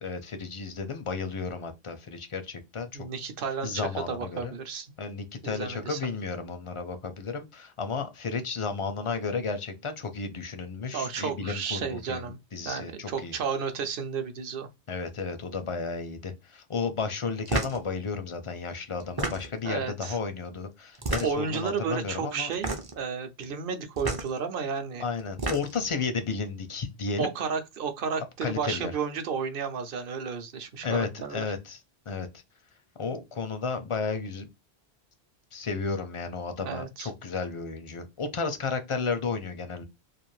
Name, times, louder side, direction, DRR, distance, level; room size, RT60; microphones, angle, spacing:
voice 1, 0.0-3.1 3.6-4.5 5.0-13.3 14.9-22.5 25.0-27.3 28.4-28.9 30.8-31.8 32.1-32.3 33.0-34.5 35.5-39.8, left 4 dB, 45° left, 0.4 m, -33 dB
voice 2, 2.9-4.9 5.4-6.0 10.9-12.4 12.6-14.7 19.6-20.2 21.2-25.0 27.2-31.5 36.6-37.1, right 6 dB, 60° right, 0.8 m, -32 dB
sound 1, 17.5-17.8 19.0-19.7 20.9-21.5 22.5-23.0 24.0-24.3 25.2-25.9, right 2 dB, 30° right, 0.5 m, -30 dB
2.5 x 2.4 x 3.1 m
omnidirectional pair, 1.1 m